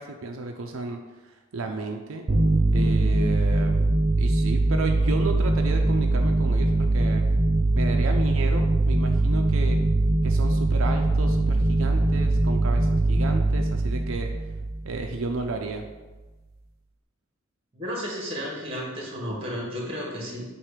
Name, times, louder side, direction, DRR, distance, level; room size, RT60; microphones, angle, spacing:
voice 1, 0.0-2.3 2.7-3.9 4.2-7.3 7.7-9.8 10.2-14.3 14.8-15.9, right 3 dB, 90° right, 3 dB, 0.5 m, -33 dB
sound 1, 2.3-15.4, right 2 dB, 50° right, 0.6 m, -22 dB
voice 2, 17.7-20.4, equal, 30° right, -3 dB, 1.5 m, -33 dB
7.3 x 2.5 x 5.0 m, 1.2 s
head